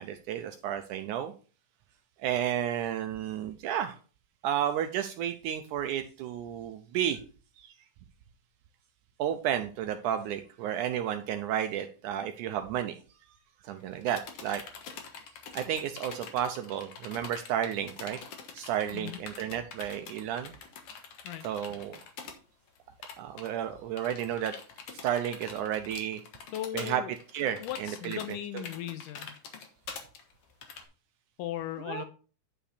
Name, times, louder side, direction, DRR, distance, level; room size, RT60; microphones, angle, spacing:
voice 1, 0.0-1.3 2.2-4.0 4.4-7.2 7.6-7.7 9.2-13.0 13.6-14.6 15.6-18.2 18.5-20.5 21.4-22.0 23.2-24.6 25.0-26.2 26.7-27.0 27.3-28.6 31.9-32.1, right 10 dB, 80° right, 7 dB, 1.9 m, -32 dB
sound 1, 13.8-22.4 22.7-22.8 23.0-23.5 24.0-30.8, left 6 dB, 60° left, 1.7 m, -45 dB
voice 2, 26.5-27.1 27.6-29.3 31.4-32.1, left 12 dB, 80° left, 10 dB, 2.1 m, -37 dB
9.8 x 5.6 x 4.2 m, 0.36 s
omnidirectional pair, 4.1 m